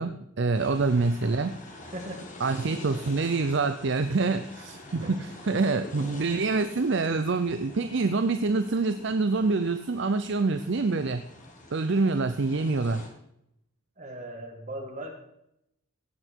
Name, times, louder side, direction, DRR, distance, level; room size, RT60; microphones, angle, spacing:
voice 1, 0.0-1.5 2.4-11.2 11.7-13.0, right 3 dB, 55° right, 9 dB, 0.5 m, -26 dB
sound 1, 0.5-13.1, left 1 dB, 35° left, 1.8 m, -47 dB
voice 2, 1.9-2.3 5.0-5.1 14.0-15.1, right 1 dB, 35° right, 1 dB, 2.2 m, -38 dB
17.5 x 8.0 x 4.5 m, 0.80 s
head